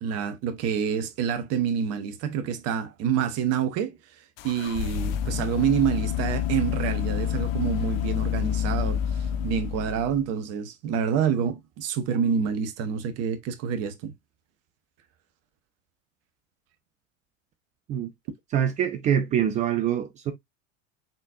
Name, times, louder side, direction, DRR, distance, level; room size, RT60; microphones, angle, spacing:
voice 1, 0.0-4.0 4.4-9.0 9.4-14.1, right 7 dB, 40° right, 0.8 m, -27 dB
sound 1, 4.4-10.3, left 10 dB, 50° left, 0.5 m, -28 dB
voice 2, 18.5-20.3, right 9 dB, 20° right, 0.3 m, -24 dB
4.0 x 3.7 x 2.4 m
figure-of-eight pair, 80°, 40 cm